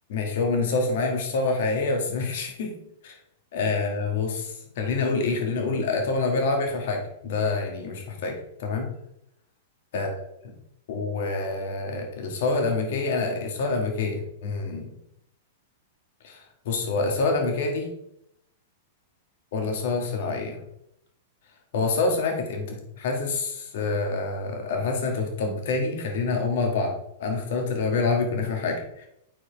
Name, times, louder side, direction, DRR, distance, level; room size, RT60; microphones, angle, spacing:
voice 1, 0.1-2.7 3.0-3.1 3.5-8.9 9.9-10.1 10.9-14.9 16.2-17.9 19.5-20.6 21.7-29.1, left 3 dB, 65° left, 2 dB, 1.9 m, -27 dB
8.5 x 4.8 x 3.5 m, 0.76 s
hypercardioid pair, 115°, 0 cm